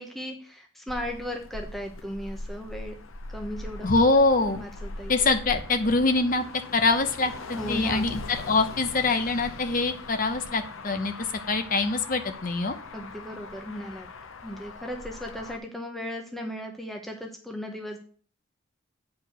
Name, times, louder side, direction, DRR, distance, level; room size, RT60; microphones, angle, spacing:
voice 1, 0.0-3.0 3.3-3.9 4.6-5.1 7.5-8.1 12.9-14.1 14.4-18.0, equal, ahead, 2 dB, 0.9 m, -36 dB
Motor vehicle (road), 0.9-15.6, left 3 dB, 75° left, 0.8 m, -41 dB
voice 2, 3.8-4.6 5.1-6.5 6.7-7.3 7.7-12.7, left 3 dB, 40° left, 7 dB, 0.8 m, -24 dB
8.4 x 4.8 x 6.3 m, 0.43 s
head